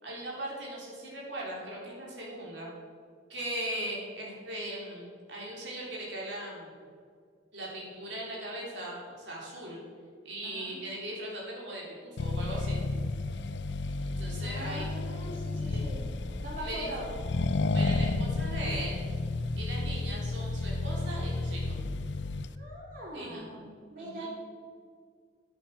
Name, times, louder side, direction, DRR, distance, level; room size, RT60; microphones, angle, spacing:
voice 1, 0.0-2.7 3.3-6.7 7.5-9.8 10.2-12.8 14.0-14.9 15.5-15.9 16.6-16.9 17.7-19.0 19.6-21.8 23.1-23.5 24.0-24.3, right 1 dB, 85° right, -4 dB, 3.3 m, -39 dB
voice 2, 10.4-10.8 14.4-16.1 16.4-17.2 22.5-24.3, equal, 50° right, -2 dB, 3.8 m, -42 dB
Accelerating revving vroom, 12.2-22.6, left 3 dB, 70° left, 0.6 m, -32 dB
10.5 x 10.5 x 5.8 m, 2.1 s
head